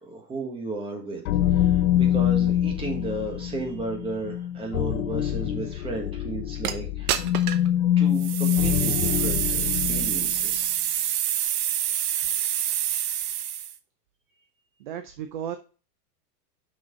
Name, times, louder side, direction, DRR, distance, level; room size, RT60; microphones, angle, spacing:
voice 1, 0.0-1.2 1.5-7.2 8.0-10.8, right 2 dB, 10° right, 0 dB, 1.5 m, -34 dB
sound 1, 1.3-10.4, left 11 dB, 60° left, 0.7 m, -25 dB
sound 2, 6.6-6.7 7.1-7.7 8.2-13.8, right 11 dB, 65° right, 1.0 m, -27 dB
voice 2, 14.8-15.6, right 9 dB, 35° right, 8 dB, 0.4 m, -35 dB
6.2 x 6.0 x 3.8 m, 0.35 s
supercardioid pair, 160°, 49 cm